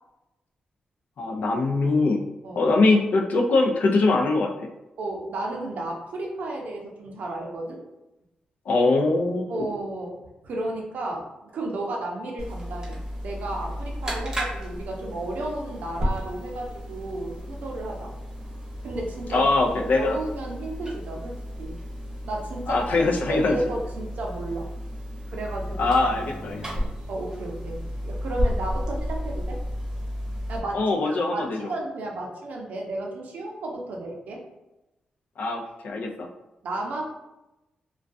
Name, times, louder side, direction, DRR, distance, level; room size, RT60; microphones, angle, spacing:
voice 1, 1.2-2.2 2.5-4.5 8.7-9.7 19.3-20.2 22.7-23.6 25.8-26.9 30.7-31.7 35.4-36.3, left 3 dB, 75° left, 1 dB, 0.4 m, -22 dB
voice 2, 5.0-7.8 9.5-10.2 10.4-18.1 18.8-19.5 19.9-21.7 22.2-24.7 25.3-25.9 27.1-29.6 30.5-34.4 36.6-37.0, right 2 dB, 75° right, 0 dB, 0.5 m, -33 dB
sound 1, 12.4-30.6, equal, 25° right, 0.7 m, -33 dB
2.3 x 2.2 x 2.5 m, 0.96 s
cardioid pair, 85°, 3 cm